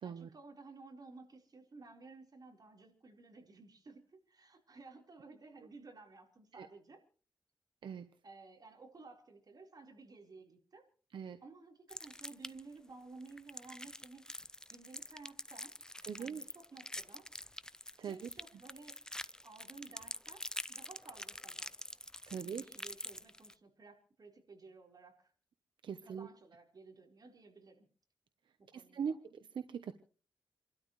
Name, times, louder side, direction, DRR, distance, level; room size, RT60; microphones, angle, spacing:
voice 1, 0.0-7.0 8.2-10.9 11.4-15.7 16.2-17.3 18.0-19.0 19.4-21.7 22.4-25.3 26.0-27.9 28.6-29.2, right 3 dB, 55° right, 1 dB, 4.3 m, -55 dB
sound 1, 11.9-12.7 13.2-23.5, left 1 dB, 10° left, 0.6 m, -46 dB
voice 2, 16.0-16.4 18.0-18.3 22.3-22.6 25.8-26.3 28.7-29.9, right 7 dB, 85° right, 9 dB, 0.9 m, -41 dB
28.5 x 13.0 x 3.2 m, 0.40 s
cardioid pair, 80°, 8 cm